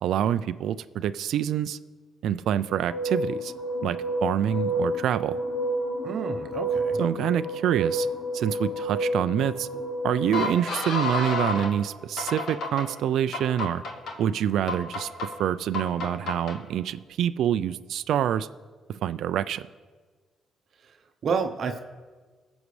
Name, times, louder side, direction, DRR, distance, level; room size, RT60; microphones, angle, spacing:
voice 1, 0.0-1.8 2.2-3.5 3.8-5.4 7.0-8.1 8.3-9.7 10.0-13.8 14.2-18.5 19.0-19.6, right 10 dB, 75° right, 13 dB, 0.3 m, -26 dB
sound 1, 2.7-11.7 12.2-12.9 13.3-14.1 14.7-15.3 15.7-16.6, equal, 70° left, 1.6 m, -30 dB
voice 2, 6.0-7.0 20.8-20.9 21.2-21.8, right 5 dB, 55° right, 6 dB, 0.7 m, -29 dB
20.0 x 7.1 x 3.2 m, 1.4 s
cardioid pair, 90°, 0 cm